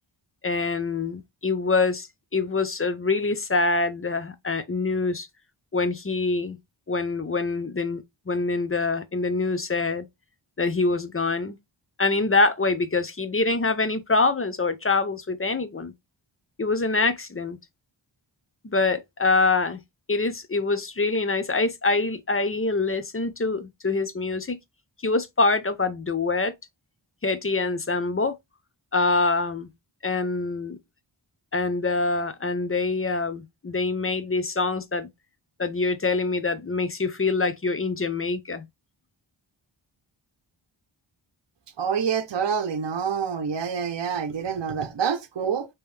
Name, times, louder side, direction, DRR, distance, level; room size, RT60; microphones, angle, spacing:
voice 1, 0.4-5.3 5.7-6.6 6.9-10.1 10.6-11.6 12.0-15.9 16.6-17.6 18.6-19.8 20.1-24.6 25.0-26.5 27.2-28.4 28.9-29.7 30.0-30.8 31.5-35.1 35.6-38.7, left 3 dB, 30° left, 0.6 m, -25 dB
voice 2, 41.8-45.7, right 7 dB, 60° right, 0.8 m, -27 dB
5.2 x 3.0 x 3.3 m
wide cardioid pair, 65°, 48 cm